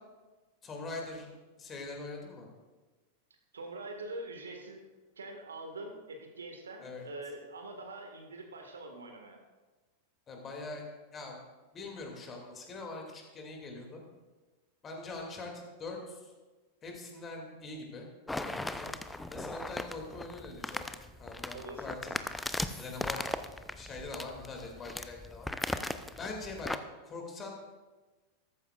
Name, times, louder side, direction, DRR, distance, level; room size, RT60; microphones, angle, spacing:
voice 1, 0.6-1.3 1.6-2.5 6.8-7.1 10.3-10.8 11.1-11.4 11.7-14.0 14.8-16.3 16.8-18.1 18.4-18.9 19.3-20.8 21.2-22.2 22.8-23.4 23.8-25.5 26.2-26.7 27.0-27.5, left 3 dB, 25° left, 1 dB, 2.5 m, -43 dB
voice 2, 3.5-9.4 21.5-21.9, right 2 dB, 70° right, 3 dB, 1.8 m, -44 dB
sound 1, 18.3-26.8, left 2 dB, 5° left, 0.5 m, -38 dB
14.0 x 13.5 x 2.5 m, 1.2 s
figure-of-eight pair, 90°, 0 cm